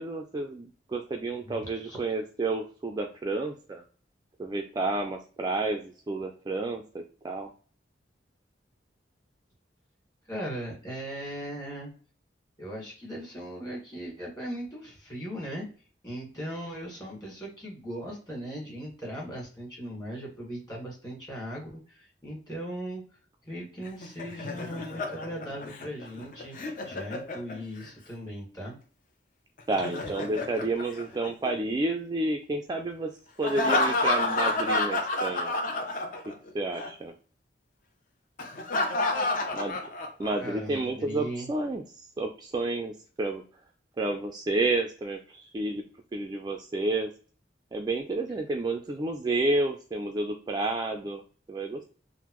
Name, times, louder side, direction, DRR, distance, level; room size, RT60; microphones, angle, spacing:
voice 1, 0.0-3.8 4.4-7.5 29.7-33.1 33.4-35.5 36.3-37.1 39.5-39.8 40.2-41.8 42.2-43.4 44.0-45.8 46.1-47.1 47.7-51.2 51.5-51.9, right 2 dB, 25° right, 3 dB, 0.3 m, -30 dB
voice 2, 1.5-2.0 10.3-11.9 12.6-15.7 16.0-23.0 23.4-28.8 39.1-39.3 40.4-41.5, equal, 20° left, -2 dB, 1.6 m, -38 dB
Laughter, 23.8-27.9 29.6-31.7 33.4-36.5 36.8-36.9 38.4-40.5, left 2 dB, 50° left, 0.6 m, -30 dB
3.5 x 2.0 x 3.0 m, 0.40 s
head